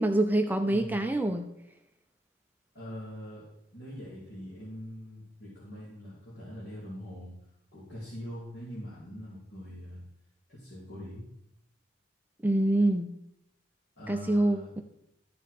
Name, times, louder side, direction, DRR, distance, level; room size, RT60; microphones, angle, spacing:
voice 1, 0.0-1.5 12.4-13.1 14.1-14.8, right 1 dB, 10° right, 6 dB, 0.4 m, -25 dB
voice 2, 0.6-1.1 2.7-3.5 3.7-7.3 7.7-10.0 10.5-11.2 14.0-14.7, equal, 55° left, -10 dB, 2.8 m, -43 dB
13.5 x 5.1 x 4.2 m, 0.80 s
head